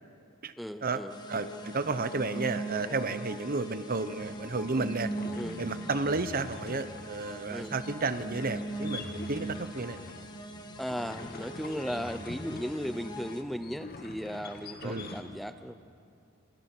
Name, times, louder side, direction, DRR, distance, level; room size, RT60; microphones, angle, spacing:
voice 1, 0.6-1.2 2.8-3.0 5.3-5.6 7.5-7.8 10.8-15.7, equal, ahead, 10 dB, 0.5 m, -36 dB
sound 1, 1.1-13.4, right 1 dB, 20° left, 1.7 m, -41 dB
voice 2, 1.3-5.1 5.6-10.0 14.8-15.1, right 3 dB, 45° right, 12 dB, 0.9 m, -32 dB
sound 2, 4.0-15.2, left 2 dB, 45° left, 2.2 m, -46 dB
28.0 x 27.0 x 6.1 m, 2.6 s
head